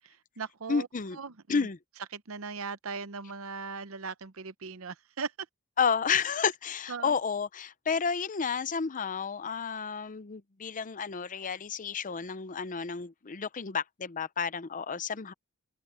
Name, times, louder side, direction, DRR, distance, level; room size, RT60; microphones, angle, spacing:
voice 1, 0.0-0.9 1.1-1.7 2.1-5.3 6.9-7.1, right 5 dB, 70° right, 0.8 m, -39 dB
voice 2, 0.7-1.2 1.5-1.8 5.8-15.3, left 6 dB, 40° left, 0.6 m, -31 dB
open air
head